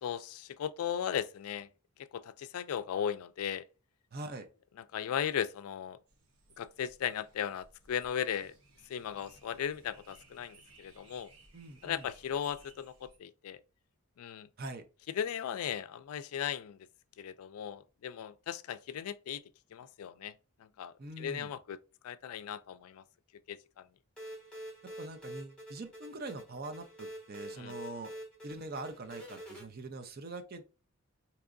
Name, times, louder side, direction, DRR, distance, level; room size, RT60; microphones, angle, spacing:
voice 1, 0.0-1.7 2.0-3.7 4.9-6.0 6.6-8.5 8.9-11.3 11.8-13.6 14.2-14.5 15.1-16.8 17.2-19.4 19.7-20.3 20.6-21.8 22.0-23.0 23.5-23.9 27.5-27.7, left 9 dB, 80° left, 0.3 m, -37 dB
voice 2, 4.1-4.5 11.5-12.1 14.6-14.8 21.0-21.5 25.0-28.1 28.4-30.6, right 2 dB, 45° right, 0.5 m, -43 dB
sound 1, 6.1-13.2, right 3 dB, 80° right, 1.0 m, -61 dB
sound 2, 24.2-29.6, equal, 5° left, 1.1 m, -46 dB
4.6 x 2.9 x 2.5 m
head